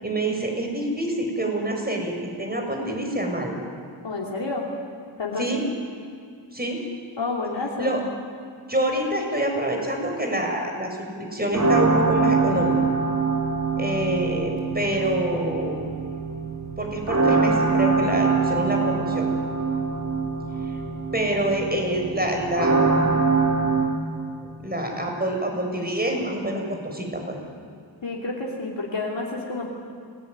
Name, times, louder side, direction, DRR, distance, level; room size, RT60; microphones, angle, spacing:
voice 1, 0.0-3.6 5.4-5.6 6.5-6.8 7.8-8.0 8.7-10.9 11.2-12.8 13.8-15.9 16.8-19.3 21.1-23.0 24.6-27.4, right 1 dB, 20° right, 2 dB, 7.0 m, -26 dB
voice 2, 4.0-4.7 5.2-5.6 7.2-8.0 28.0-29.7, left 3 dB, 75° left, -3 dB, 3.3 m, -29 dB
sound 1, 11.5-23.9, right 4 dB, 40° right, 5.7 m, -24 dB
28.5 x 19.0 x 9.8 m, 2.2 s
wide cardioid pair, 65°, 44 cm